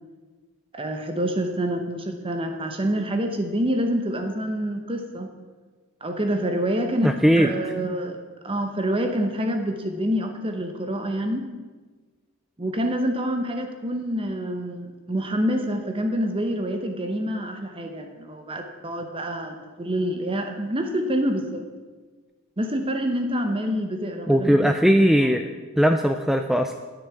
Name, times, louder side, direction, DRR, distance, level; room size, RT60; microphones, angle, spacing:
voice 1, 0.7-5.3 6.0-8.2 8.4-11.5 12.6-21.6 22.6-24.8 25.2-25.3, equal, 25° right, 5 dB, 0.9 m, -27 dB
voice 2, 7.0-7.5 24.3-25.4 25.8-26.8, equal, ahead, 6 dB, 0.3 m, -19 dB
9.9 x 6.2 x 8.3 m, 1.3 s
head